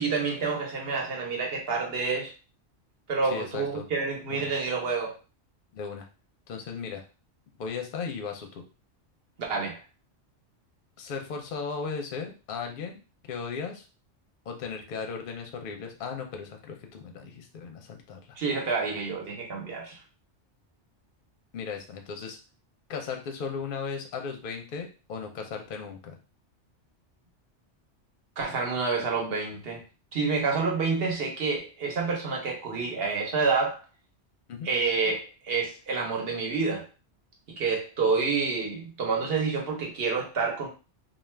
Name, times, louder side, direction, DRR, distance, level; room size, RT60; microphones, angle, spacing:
voice 1, 0.0-2.3 3.1-5.2 9.5-9.8 18.4-20.0 28.4-29.8 30.1-33.8 34.6-36.9 37.6-40.7, right 4 dB, 55° right, 0 dB, 1.0 m, -28 dB
voice 2, 3.3-3.8 4.3-4.5 5.7-6.1 6.5-7.0 7.6-8.7 11.0-13.0 13.3-13.8 14.5-18.4 21.5-22.4 22.9-26.2 34.5-34.7, left 5 dB, 55° left, 3 dB, 0.7 m, -36 dB
2.4 x 2.3 x 3.2 m, 0.32 s
omnidirectional pair, 1.2 m